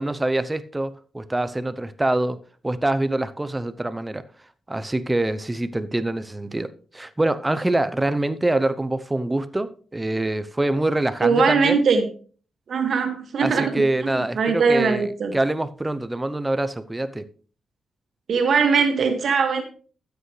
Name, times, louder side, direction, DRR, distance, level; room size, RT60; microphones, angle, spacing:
voice 1, 0.0-2.4 2.6-4.2 4.7-11.8 13.4-17.3, right 2 dB, 15° right, 0.7 m, -25 dB
voice 2, 11.2-12.1 12.7-15.3 18.3-19.6, right 5 dB, 65° right, 2.0 m, -21 dB
12.5 x 8.2 x 3.3 m
cardioid pair, 95°, 0 cm